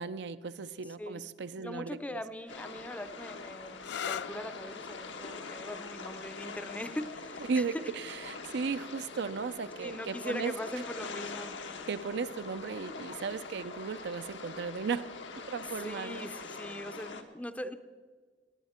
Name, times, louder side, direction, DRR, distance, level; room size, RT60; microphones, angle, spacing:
voice 1, 0.0-2.2 7.5-10.5 11.9-15.1 15.5-16.3, right 5 dB, 65° right, 12 dB, 0.5 m, -36 dB
voice 2, 1.6-7.6 9.8-11.6 15.8-17.7, left 1 dB, 10° left, 10 dB, 0.5 m, -41 dB
sound 1, 2.5-17.2, left 4 dB, 85° left, 1.1 m, -44 dB
sound 2, 3.7-11.2 12.2-12.7 16.2-16.6, left 8 dB, 65° left, 0.4 m, -46 dB
20.0 x 9.0 x 4.3 m, 1.5 s
head